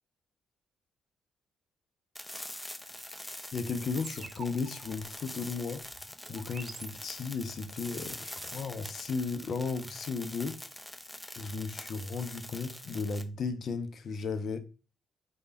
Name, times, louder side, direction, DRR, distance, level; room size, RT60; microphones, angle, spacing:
sound 1, 2.2-13.2, left 1 dB, 10° left, 0.5 m, -44 dB
voice 1, 3.5-5.8 6.3-10.6 11.4-14.6, left 4 dB, 55° left, 0.5 m, -35 dB
sound 2, 3.9-7.6, right 3 dB, 40° right, 0.6 m, -49 dB
3.3 x 2.1 x 3.9 m
hypercardioid pair, 50°, 0 cm